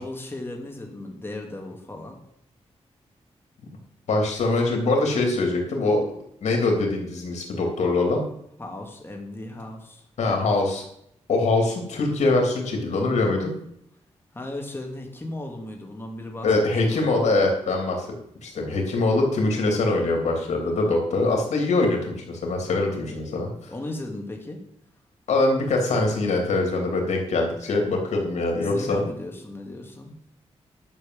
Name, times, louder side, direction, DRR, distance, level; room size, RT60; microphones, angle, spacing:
voice 1, 0.0-2.2 8.6-10.0 14.3-16.5 16.9-17.1 23.7-24.6 28.6-30.2, left 1 dB, 20° left, 1 dB, 2.6 m, -36 dB
voice 2, 4.1-6.0 6.4-8.2 10.2-10.8 11.3-13.5 16.4-18.1 18.4-23.5 25.3-29.0, left 2 dB, 90° left, 1 dB, 3.2 m, -23 dB
11.0 x 6.5 x 7.9 m, 0.75 s
cardioid pair, 90°, 11 cm